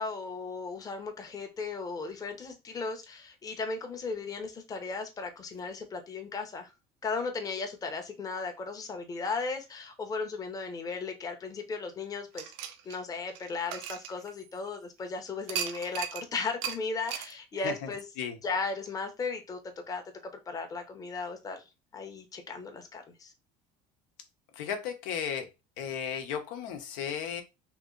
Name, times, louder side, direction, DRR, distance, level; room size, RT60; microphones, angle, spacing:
voice 1, 0.0-6.7 7.0-12.4 12.8-18.0 18.4-19.6 19.9-20.0 20.5-21.6 21.9-23.3, left 4 dB, 20° left, 0.7 m, -36 dB
sound 1, 12.4-14.8 15.5-16.2 16.6-16.8 17.1-17.3, right 9 dB, 90° right, 0.7 m, -37 dB
voice 2, 17.6-17.9 18.2-18.4 24.5-25.5 25.8-27.4, left 8 dB, 90° left, 0.9 m, -34 dB
3.0 x 2.8 x 3.7 m
cardioid pair, 145°, 17 cm